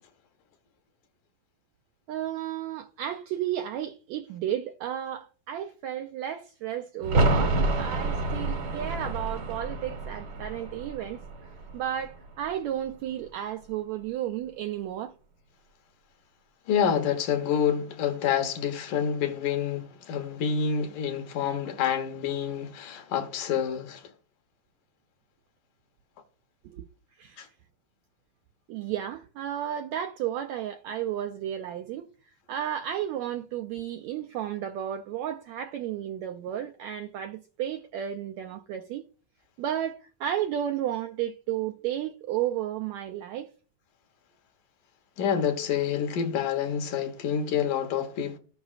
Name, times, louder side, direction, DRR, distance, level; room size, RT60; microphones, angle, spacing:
voice 1, 2.1-15.1 26.6-26.8 27.2-27.5 28.7-32.1 32.5-39.0 39.6-43.5, right 10 dB, 80° right, 1.6 m, -33 dB
sound 1, 7.0-12.6 12.9-13.0, right 2 dB, 50° right, 1.3 m, -28 dB
voice 2, 16.7-24.1 27.4-27.5 45.2-48.4, left 8 dB, 75° left, 2.6 m, -28 dB
17.0 x 6.0 x 2.4 m
omnidirectional pair, 3.8 m